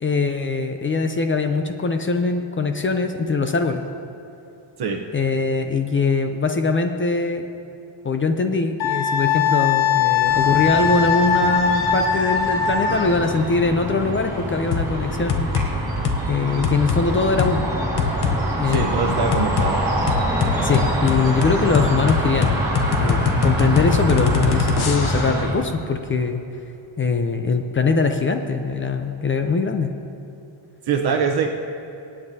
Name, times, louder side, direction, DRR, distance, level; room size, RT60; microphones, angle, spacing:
voice 1, 0.0-3.8 5.1-7.5 8.0-15.5 16.3-17.7 18.6-19.2 20.6-22.7 23.0-26.4 27.0-29.9, left 4 dB, 25° left, 6 dB, 0.4 m, -22 dB
Wind instrument woodwind instrument, 8.8-13.1, left 7 dB, 65° left, 1.2 m, -20 dB
sound 1, 10.2-25.5, right 1 dB, 10° right, 3.2 m, -26 dB
sound 2, 14.7-14.9 15.3-15.7 16.0-16.2 16.6-17.0 17.4-17.5 18.0-18.4 18.7-18.9 19.3-19.7 20.1-25.4, left 6 dB, 50° left, 0.8 m, -22 dB
voice 2, 18.7-19.9 30.9-31.7, right 5 dB, 50° right, 2 dB, 0.8 m, -23 dB
26.0 x 8.8 x 2.7 m, 2.8 s
cardioid pair, 175°, 50 cm